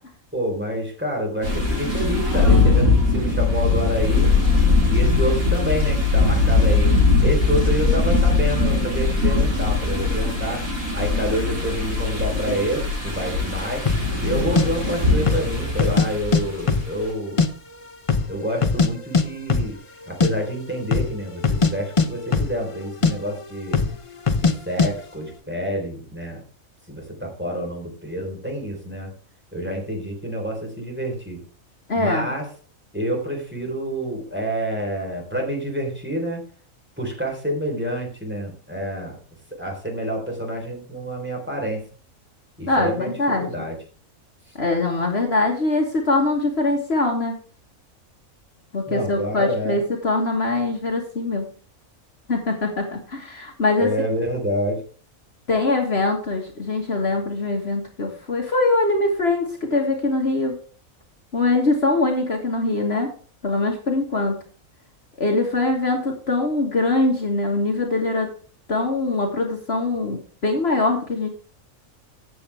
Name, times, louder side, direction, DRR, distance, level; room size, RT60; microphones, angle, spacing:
voice 1, 0.3-4.3 4.9-6.9 7.2-10.6 10.9-13.8 14.2-17.4 18.3-19.7 20.1-23.8 24.4-26.4 26.9-29.1 29.5-31.4 31.9-32.5 32.9-36.4 37.0-39.2 39.6-41.8 42.6-43.8 44.5-44.6 48.8-49.8 53.6-54.8, right 1 dB, 10° right, 0 dB, 3.9 m, -28 dB
sound 1, 1.4-16.7, left 3 dB, 80° right, 5.1 m, -20 dB
sound 2, 13.9-14.1 14.6-14.7 15.2-15.5 15.8-16.4 16.7-17.5 17.7-17.8 18.1-18.9 19.1-19.2 19.5-19.7 20.0-20.3 20.8-21.1 21.4-22.8 23.0-23.1 23.7-24.0 24.3-24.5 24.8-24.9, left 4 dB, 30° left, 0.7 m, -20 dB
voice 2, 31.9-32.3 42.7-43.5 44.6-47.4 48.7-51.5 52.3-53.9 55.5-60.6 61.3-63.1 63.4-64.4 65.2-68.3 68.7-71.3, left 2 dB, 50° left, 1 dB, 1.9 m, -22 dB
14.0 x 8.0 x 3.5 m, 0.41 s
omnidirectional pair, 1.5 m